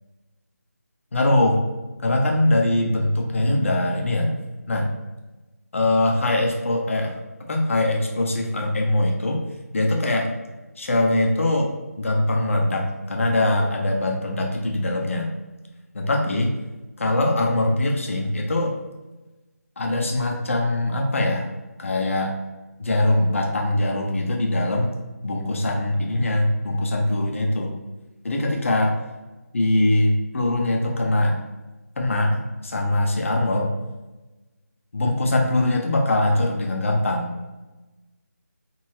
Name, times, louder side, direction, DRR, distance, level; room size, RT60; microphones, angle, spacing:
voice 1, 1.1-1.6 2.0-4.4 4.7-4.9 5.7-7.2 7.5-9.4 9.7-10.4 10.8-15.3 15.9-16.6 17.0-18.8 19.8-21.5 21.8-22.3 22.8-24.9 25.2-27.8 28.2-28.9 29.5-31.4 32.0-33.7 34.9-37.3, left 1 dB, 50° left, 1 dB, 0.6 m, -22 dB
3.1 x 2.6 x 2.7 m, 1.1 s
figure-of-eight pair, 160°, 9 cm